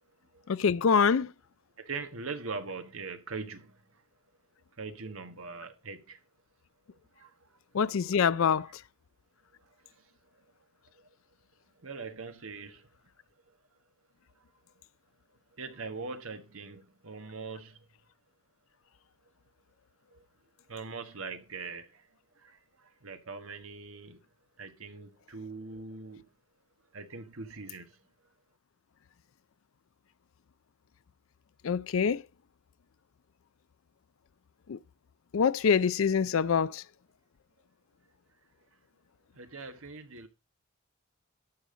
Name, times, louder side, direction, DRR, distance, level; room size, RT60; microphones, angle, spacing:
voice 1, 0.5-1.3 7.7-8.7 31.6-32.2 34.7-34.8 35.3-36.8, left 6 dB, 70° left, 0.4 m, -25 dB
voice 2, 1.8-3.7 4.8-6.2 7.2-7.3 11.8-12.8 15.6-17.7 20.7-21.9 23.0-24.2 24.6-26.2 26.9-27.9 39.4-40.3, right 4 dB, 75° right, 1.4 m, -41 dB
12.5 x 7.0 x 3.8 m
head